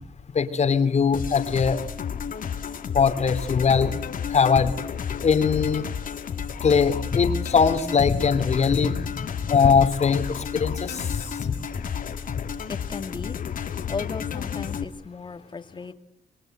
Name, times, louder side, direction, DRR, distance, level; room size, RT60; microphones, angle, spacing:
voice 1, 0.3-1.8 2.9-3.9 4.3-4.7 5.2-5.9 6.6-9.0 9.4-11.5, left 6 dB, 45° left, 9 dB, 2.9 m, -21 dB
sound 1, 1.1-14.8, left 7 dB, 60° left, 2.4 m, -31 dB
voice 2, 12.7-13.4 13.9-15.9, left 4 dB, 30° left, 8 dB, 2.5 m, -35 dB
28.0 x 22.5 x 7.9 m, 0.72 s
cardioid pair, 110°, 16 cm